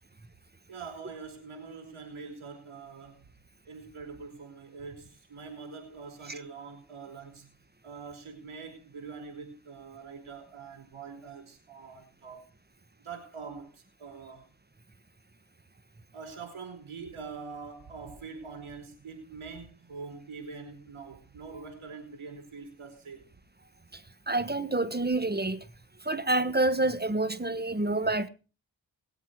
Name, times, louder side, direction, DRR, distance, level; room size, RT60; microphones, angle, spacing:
voice 1, 0.7-3.3 3.6-7.5 7.8-12.4 13.0-14.5 16.1-23.3, right 5 dB, 90° right, 4.9 m, -44 dB
voice 2, 24.3-25.6 26.0-28.3, right 2 dB, 20° right, 1.4 m, -27 dB
21.0 x 8.1 x 4.7 m
cardioid pair, 40°, 48 cm